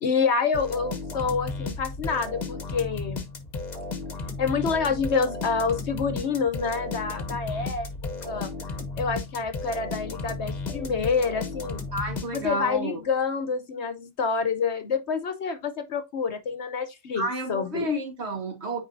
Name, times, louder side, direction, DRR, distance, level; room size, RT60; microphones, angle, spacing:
voice 1, 0.0-3.2 4.4-7.9 8.3-8.5 9.0-11.8 12.3-17.2 17.5-17.9, left 5 dB, 60° left, 1.0 m, -27 dB
sound 1, 0.5-12.8, left 3 dB, 35° left, 1.1 m, -34 dB
voice 2, 11.9-13.0 17.2-18.8, right 1 dB, 55° right, 1.9 m, -30 dB
8.8 x 4.6 x 2.6 m
omnidirectional pair, 1.4 m